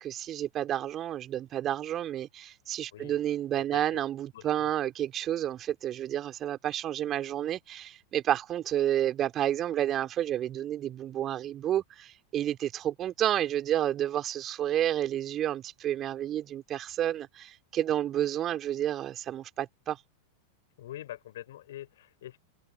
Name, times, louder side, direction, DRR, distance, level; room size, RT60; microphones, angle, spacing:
voice 1, 0.0-20.0, right 11 dB, 30° right, 3.1 m, -30 dB
voice 2, 3.7-4.0 4.3-4.7 20.8-22.4, left 13 dB, 60° left, 5.9 m, -44 dB
figure-of-eight pair, 90°, 0 cm